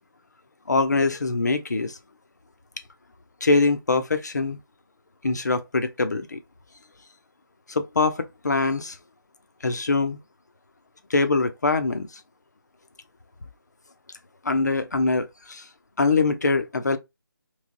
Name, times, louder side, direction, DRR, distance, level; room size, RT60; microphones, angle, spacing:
voice 1, 0.7-2.0 3.4-4.6 5.2-6.4 7.7-9.0 9.6-10.2 11.1-12.1 14.4-15.6 16.0-17.0, left 3 dB, 50° left, 0.7 m, -23 dB
3.2 x 3.2 x 3.8 m
figure-of-eight pair, 170°, 12 cm